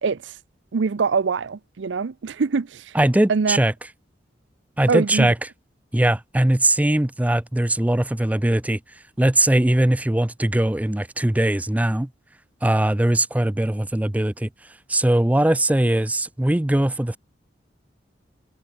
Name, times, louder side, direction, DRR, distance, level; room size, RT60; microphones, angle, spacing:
voice 1, 0.0-0.4 0.7-3.0 3.3-3.6 4.9-5.3, right 5 dB, 75° right, 0.5 m, -24 dB
voice 2, 2.9-3.7 4.8-5.3 5.9-8.8 9.2-12.1 12.6-14.5 14.9-17.2, right 1 dB, 10° right, 0.5 m, -20 dB
head